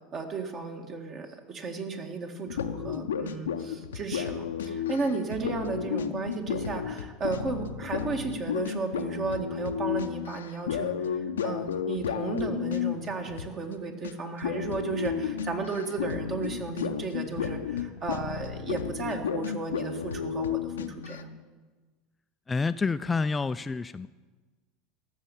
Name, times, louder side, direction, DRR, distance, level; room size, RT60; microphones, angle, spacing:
voice 1, 0.1-21.3, right 4 dB, 40° right, 4 dB, 1.9 m, -34 dB
sound 1, 2.5-13.7 14.0-14.1 14.4-21.2, left 7 dB, 80° left, 0.6 m, -33 dB
voice 2, 22.5-24.1, left 4 dB, 20° left, 12 dB, 0.3 m, -28 dB
14.0 x 6.5 x 8.8 m, 1.3 s
hypercardioid pair, 80°, 0 cm